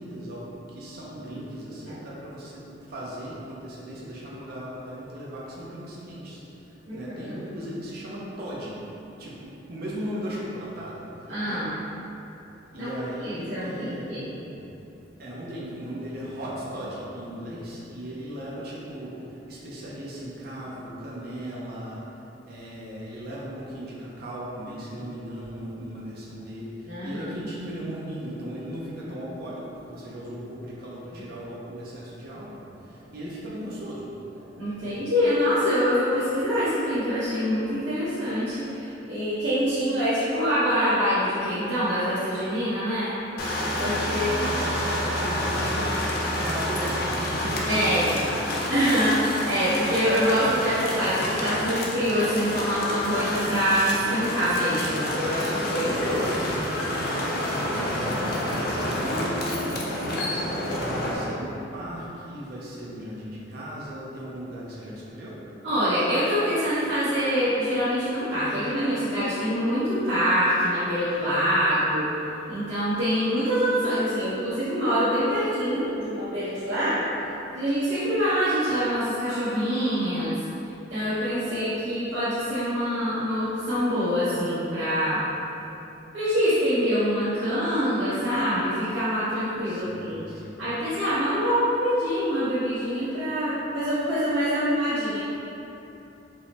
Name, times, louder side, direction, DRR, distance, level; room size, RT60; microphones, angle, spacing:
voice 1, 0.0-11.4 12.7-14.2 15.2-22.1 22.4-34.1 34.7-35.0 43.7-48.6 57.4-65.4 89.6-90.6, equal, 55° right, -6 dB, 0.5 m, -37 dB
voice 2, 6.9-7.4 11.3-11.7 12.8-12.9 13.2-14.3 26.9-27.3 34.6-43.1 43.7-44.3 47.7-48.0 48.7-56.5 65.6-72.1 72.5-77.1 77.5-80.4 80.9-85.2 86.1-90.2 90.6-95.2, equal, 85° right, -15 dB, 0.9 m, -25 dB
sound 1, 43.4-61.1, left 1 dB, 55° left, 0.5 m, -28 dB
4.7 x 2.1 x 2.8 m, 3.0 s
head